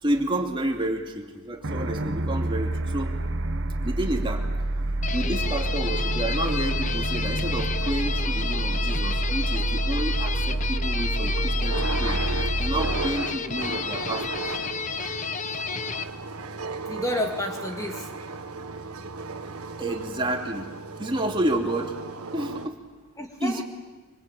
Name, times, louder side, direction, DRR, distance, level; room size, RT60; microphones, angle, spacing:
voice 1, 0.0-3.2 3.8-4.5 5.1-12.2 12.6-14.4 15.4-15.6 19.8-20.7 21.0-22.0 22.3-22.8 23.4-23.6, right 1 dB, 20° right, 2 dB, 2.6 m, -30 dB
sound 1, 1.6-14.4, right 1 dB, 55° right, 1.5 m, -28 dB
sound 2, 5.0-16.0, left 6 dB, 35° left, 0.9 m, -31 dB
sound 3, 5.3-22.7, right 3 dB, 80° right, 1.7 m, -36 dB
voice 2, 16.9-18.1 23.2-23.6, left 1 dB, 15° left, 2 dB, 2.0 m, -30 dB
25.5 x 25.5 x 8.8 m, 1.3 s
head